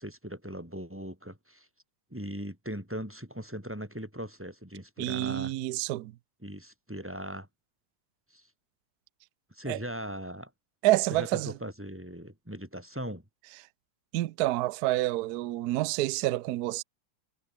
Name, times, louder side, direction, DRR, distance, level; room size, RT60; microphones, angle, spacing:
voice 1, 0.0-1.7 2.1-5.5 6.4-7.5 8.3-8.5 9.5-10.5 11.1-13.2, equal, 5° right, 7.7 m, -39 dB
voice 2, 5.0-6.1 9.7-9.8 10.8-11.5 14.1-16.8, right 17 dB, 70° right, 0.9 m, -28 dB
omnidirectional pair, 2.3 m